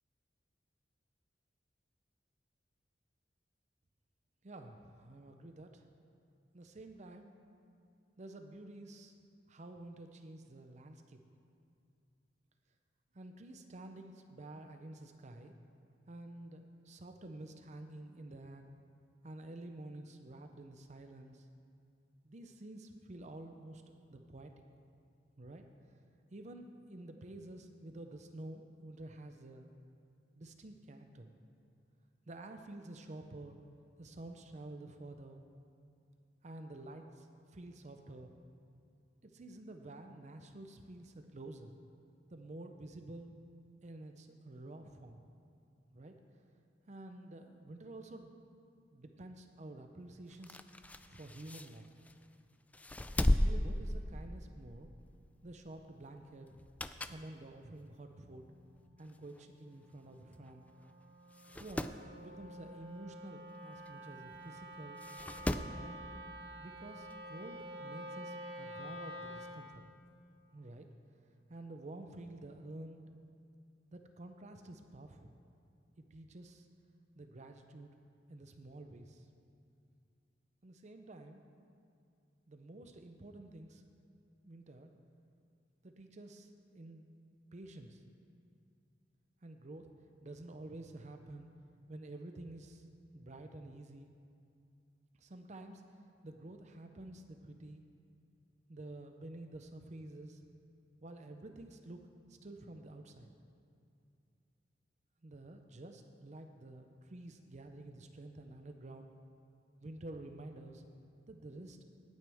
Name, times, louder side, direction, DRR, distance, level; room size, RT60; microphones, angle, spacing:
voice 1, 4.4-5.9 6.5-7.4 8.2-9.2 9.5-11.2 13.1-15.5 16.1-18.7 19.2-21.5 22.2-23.8 24.1-24.5 25.4-25.6 26.3-29.7 30.4-31.3 32.3-33.6 34.0-35.4 36.4-38.3 39.2-41.7 42.3-43.3 43.8-45.2 45.9-46.2 46.9-48.4 48.9-50.6 51.0-51.9 53.4-54.9 55.4-56.5 57.0-58.4 59.0-60.7 61.6-61.9 62.2-65.0 65.7-66.1 66.6-69.8 70.5-70.9 71.5-73.0 73.9-75.3 76.0-76.7 77.2-77.9 78.3-79.3 80.6-81.4 82.5-84.0 84.4-84.9 85.8-87.1 87.5-88.0 89.4-89.9 90.2-91.5 91.9-92.8 93.1-94.1 95.2-96.0 96.2-97.8 98.7-100.4 101.0-102.0 102.3-103.3 105.2-109.1 109.8-110.9 111.3-111.8, right 2 dB, 40° right, 6 dB, 0.6 m, -50 dB
sound 1, 50.3-52.3 52.7-54.6 55.0-55.2 56.5-57.3 57.8-57.9 58.8-58.9 59.1-59.2 59.4-59.5 60.3-60.5 60.8-60.9 61.3-62.0 63.9-64.0 65.0-65.8 67.1-67.2, left 1 dB, 10° left, 0.3 m, -35 dB
Wind instrument woodwind instrument, 58.1-69.7, equal, 85° right, 2.4 m, -49 dB
18.0 x 9.2 x 3.5 m, 2.5 s
head